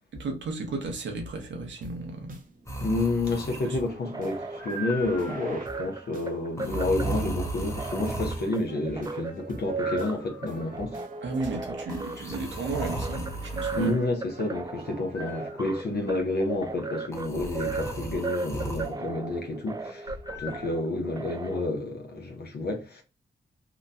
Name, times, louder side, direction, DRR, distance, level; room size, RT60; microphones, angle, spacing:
voice 1, 0.1-2.4 3.6-3.8 11.2-13.9, right 3 dB, 80° right, 0.8 m, -34 dB
sound 1, 1.8-15.6, right 2 dB, 45° right, 0.7 m, -48 dB
sound 2, 2.7-3.9 4.6-5.5 6.6-8.5 9.8-10.7 11.9-13.9 15.1-15.9 17.1-18.9 20.3-20.7, right 1 dB, 15° left, 0.8 m, -36 dB
voice 2, 2.8-11.0 13.8-23.0, left 2 dB, 60° left, 0.7 m, -30 dB
sound 3, 3.9-21.6, right 3 dB, 20° right, 0.4 m, -37 dB
3.0 x 2.2 x 2.6 m
cardioid pair, 60°, 19 cm